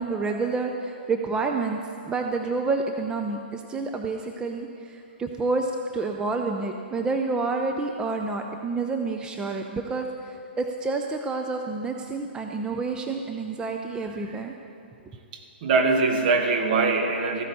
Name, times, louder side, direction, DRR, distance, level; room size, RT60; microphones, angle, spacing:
voice 1, 0.0-1.8 2.1-14.5, right 3 dB, 15° right, 3 dB, 0.6 m, -29 dB
voice 2, 15.3-17.4, right 4 dB, 50° right, 3 dB, 1.7 m, -23 dB
14.5 x 12.5 x 4.3 m, 2.5 s
hypercardioid pair, 120°, 6 cm